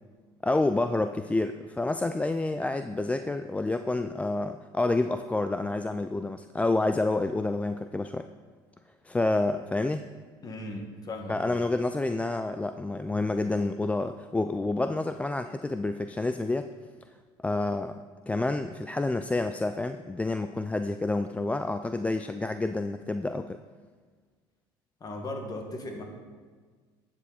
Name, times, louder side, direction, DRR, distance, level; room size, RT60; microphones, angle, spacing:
voice 1, 0.4-8.3 9.0-10.0 11.3-16.7 17.4-23.6, left 2 dB, 10° left, 9 dB, 0.4 m, -28 dB
voice 2, 10.4-11.6 25.0-26.0, left 1 dB, 30° left, 2 dB, 2.0 m, -37 dB
11.0 x 7.2 x 4.3 m, 1.5 s
supercardioid pair, 85°, 12 cm